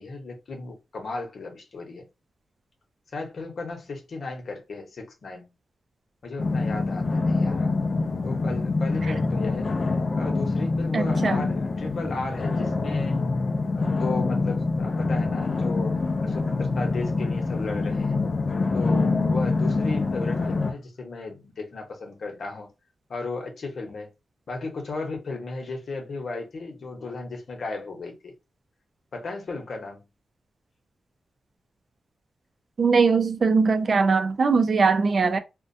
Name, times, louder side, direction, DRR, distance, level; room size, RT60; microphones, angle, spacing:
voice 1, 0.0-2.1 3.1-5.5 6.2-7.8 8.2-9.7 10.1-13.2 13.7-18.2 18.7-22.7 23.1-24.1 24.5-28.3 29.1-30.1, left 3 dB, 60° left, 0.8 m, -35 dB
sound 1, 6.4-20.7, left 3 dB, 40° left, 0.4 m, -25 dB
voice 2, 10.9-11.4 32.8-35.4, right 4 dB, 50° right, 0.4 m, -21 dB
2.3 x 2.2 x 2.6 m
wide cardioid pair, 115°, 0 cm